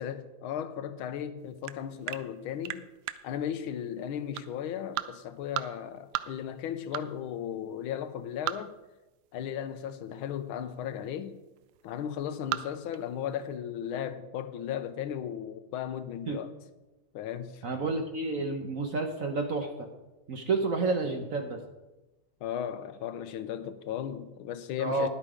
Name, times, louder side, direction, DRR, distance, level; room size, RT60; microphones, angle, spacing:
voice 1, 0.0-2.8 3.2-8.7 9.3-11.4 11.8-16.5 17.1-17.6 22.4-25.1, left 9 dB, 80° left, 1.5 m, -36 dB
sound 1, 1.4-13.5, right 14 dB, 85° right, 1.4 m, -38 dB
voice 2, 17.6-19.9 20.3-21.6 24.8-25.1, right 3 dB, 55° right, 1.0 m, -30 dB
11.0 x 8.5 x 4.9 m
omnidirectional pair, 2.2 m